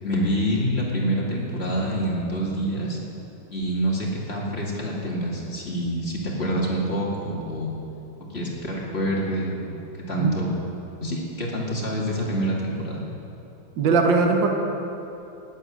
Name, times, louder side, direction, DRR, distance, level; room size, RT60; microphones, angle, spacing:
voice 1, 0.0-3.0 3.5-7.8 8.3-9.7 10.1-10.6 11.0-13.0, right 1 dB, 30° left, -3 dB, 2.4 m, -26 dB
voice 2, 13.8-14.5, right 4 dB, 65° right, 3 dB, 1.9 m, -19 dB
19.0 x 8.2 x 6.5 m, 2.9 s
omnidirectional pair, 2.3 m